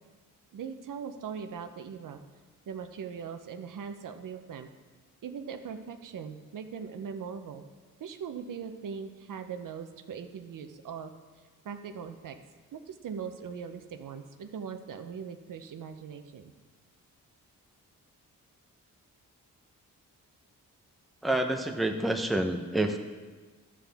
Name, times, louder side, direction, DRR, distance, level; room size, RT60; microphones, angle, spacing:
voice 1, 0.5-2.2 2.7-4.7 5.2-7.6 8.0-11.1 11.6-12.4 12.7-16.5, right 6 dB, 70° right, 7 dB, 0.7 m, -40 dB
voice 2, 21.2-23.0, right 1 dB, ahead, 3 dB, 0.7 m, -28 dB
11.0 x 7.5 x 3.5 m, 1.4 s
cardioid pair, 90°, 34 cm